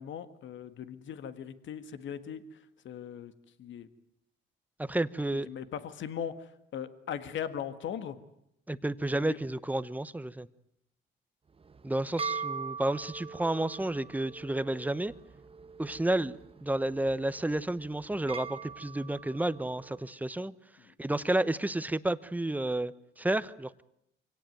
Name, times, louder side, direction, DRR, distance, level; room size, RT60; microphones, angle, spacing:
voice 1, 0.0-2.6 2.8-3.3 3.6-3.9 5.4-8.2 9.1-9.4 20.9-21.0, left 8 dB, 70° left, 11 dB, 1.7 m, -39 dB
voice 2, 4.8-5.5 8.7-10.5 11.8-15.1 15.8-20.5 21.0-23.8, right 1 dB, 10° right, 15 dB, 0.9 m, -31 dB
sound 1, 11.6-20.1, right 5 dB, 30° right, 1.1 m, -42 dB
24.5 x 17.5 x 9.3 m, 0.79 s
cardioid pair, 90°, 20 cm